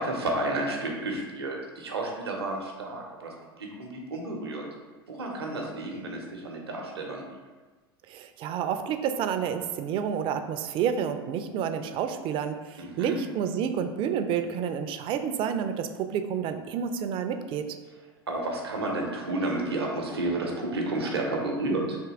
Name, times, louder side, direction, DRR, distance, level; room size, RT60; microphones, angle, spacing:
voice 1, 0.0-4.6 5.1-7.4 12.8-13.2 18.3-22.0, right 2 dB, 85° right, 0 dB, 0.7 m, -31 dB
voice 2, 8.1-17.7, right 8 dB, 40° right, 8 dB, 0.4 m, -29 dB
3.5 x 2.8 x 3.9 m, 1.3 s
hypercardioid pair, 85°, 13 cm